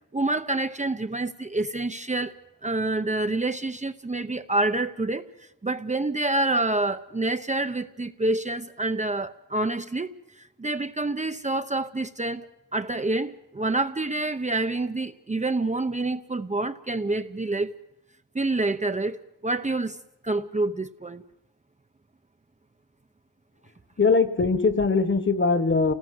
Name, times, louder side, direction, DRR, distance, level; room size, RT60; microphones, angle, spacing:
voice 1, 0.1-2.3 2.6-10.1 10.4-12.5 12.7-17.7 18.3-19.2 19.4-20.0 20.2-21.2, right 2 dB, 20° right, 9 dB, 0.9 m, -27 dB
voice 2, 24.0-25.9, left 4 dB, 40° left, 14 dB, 1.7 m, -21 dB
29.0 x 19.0 x 7.9 m, 0.93 s
wide cardioid pair, 140°, 31 cm